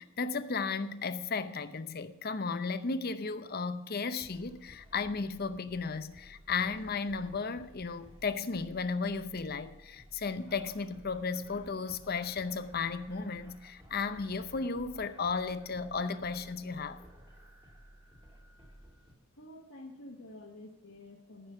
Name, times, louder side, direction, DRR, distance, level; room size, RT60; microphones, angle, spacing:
voice 1, 0.0-17.0, left 4 dB, 45° left, 0.7 m, -34 dB
sound 1, 4.2-19.1, equal, 25° right, 2.1 m, -56 dB
voice 2, 19.3-21.5, left 1 dB, 75° left, 1.5 m, -49 dB
14.5 x 6.1 x 6.7 m
head